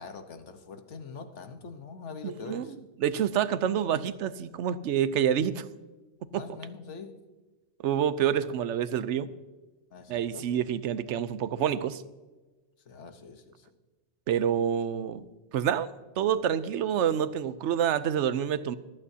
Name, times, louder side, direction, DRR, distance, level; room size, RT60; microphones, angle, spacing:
voice 1, 0.0-2.8 6.3-7.2 9.9-10.5 12.8-13.7, left 5 dB, 85° left, 8 dB, 1.4 m, -43 dB
voice 2, 2.2-2.7 3.0-5.6 6.3-6.4 7.8-9.3 10.1-12.0 14.3-15.2 15.5-15.9 16.2-18.8, right 9 dB, 85° right, 15 dB, 0.9 m, -27 dB
24.0 x 8.8 x 2.8 m, 1.2 s
omnidirectional pair, 1.2 m